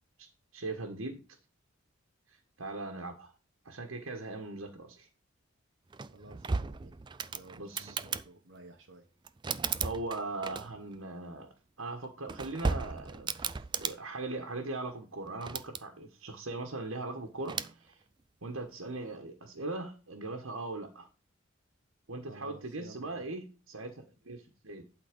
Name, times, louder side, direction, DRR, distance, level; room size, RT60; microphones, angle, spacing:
voice 1, 0.5-1.2 2.3-3.3 3.6-5.1 7.6-8.0 9.8-13.5 13.8-18.0 18.4-21.1 22.1-24.8, right 2 dB, 85° right, 1.3 m, -40 dB
sound 1, 5.9-8.3 9.2-10.9 12.0-14.0 15.3-15.8 17.4-17.7, right 5 dB, 20° right, 0.3 m, -35 dB
voice 2, 6.1-7.0 7.3-9.1 22.3-23.3, right 2 dB, 60° right, 1.1 m, -53 dB
11.5 x 3.9 x 5.2 m
head